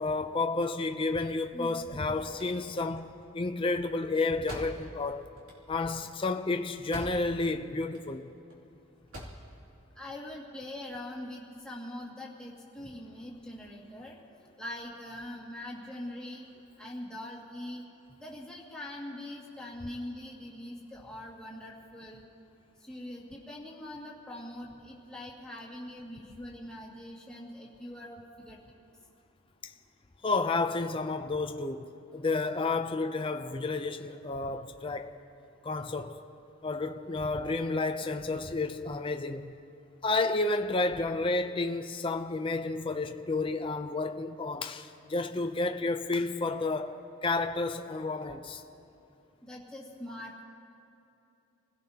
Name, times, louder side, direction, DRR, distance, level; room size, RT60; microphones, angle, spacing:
voice 1, 0.0-5.3 5.7-8.3 29.6-29.7 30.2-35.1 35.6-36.2 36.6-39.5 40.0-48.6, left 3 dB, 25° left, 0.5 m, -31 dB
voice 2, 1.5-2.0 10.0-14.2 14.6-16.4 16.8-17.8 18.2-22.3 22.8-28.6 49.4-50.4, left 1 dB, 5° left, 2.0 m, -43 dB
sound 1, 2.2-7.5 7.8-8.6 8.9-9.5, equal, 70° right, 2.7 m, -45 dB
27.5 x 16.5 x 2.9 m
head